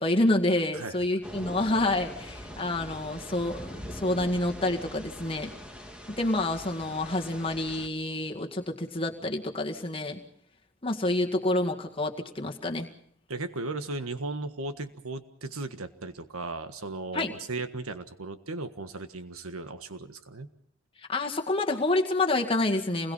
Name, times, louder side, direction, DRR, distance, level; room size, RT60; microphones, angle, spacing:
voice 1, 0.0-5.5 6.2-10.2 10.8-12.9 17.1-17.3 21.1-23.1, left 2 dB, 25° left, 2 dB, 2.0 m, -28 dB
voice 2, 0.7-1.1 13.3-20.5, right 2 dB, 85° right, 9 dB, 1.6 m, -36 dB
sound 1, 1.2-7.9, equal, 5° right, 1.9 m, -42 dB
28.0 x 21.5 x 5.7 m, 0.63 s
head